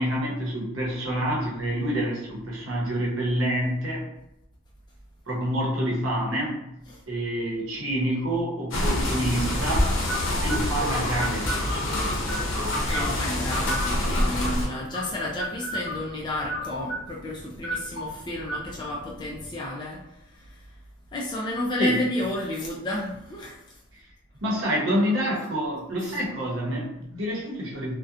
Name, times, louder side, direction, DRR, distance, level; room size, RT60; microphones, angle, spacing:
voice 1, 0.0-4.0 5.3-6.6 7.1-9.9 10.4-12.2 21.8-22.0 24.4-28.0, equal, 90° right, -3 dB, 0.8 m, -27 dB
sound 1, 8.7-14.7, left 1 dB, 75° left, 0.6 m, -26 dB
sound 2, 10.1-19.6, equal, 40° right, 0.9 m, -36 dB
voice 2, 12.7-20.0 21.1-23.5, left 1 dB, 25° left, -4 dB, 0.3 m, -31 dB
2.7 x 2.1 x 2.4 m, 0.82 s
head